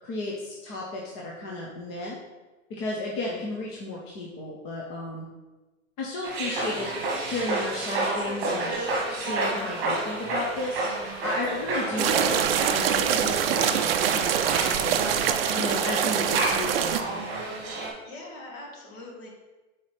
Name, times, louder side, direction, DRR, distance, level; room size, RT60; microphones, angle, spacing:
voice 1, 0.0-2.2 2.8-5.3 6.0-17.3, left 2 dB, 20° left, -2 dB, 0.6 m, -34 dB
sound 1, 6.2-17.9, right 2 dB, 25° right, 1.6 m, -31 dB
voice 2, 11.9-12.4 18.0-19.3, left 2 dB, 45° left, -1 dB, 1.8 m, -42 dB
sound 2, 12.0-17.0, right 9 dB, 50° right, 0.5 m, -24 dB
5.6 x 4.3 x 4.8 m, 1.2 s
hypercardioid pair, 150°, 41 cm